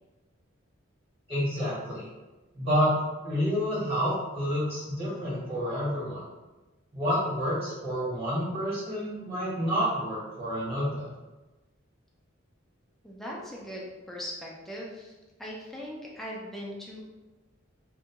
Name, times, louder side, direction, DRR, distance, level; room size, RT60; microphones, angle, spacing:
voice 1, 1.3-2.1 2.5-3.0 3.2-6.2 6.9-11.1, equal, 30° right, -9 dB, 1.3 m, -29 dB
voice 2, 13.0-17.0, equal, ahead, -4 dB, 0.5 m, -40 dB
2.6 x 2.3 x 2.9 m, 1.1 s
head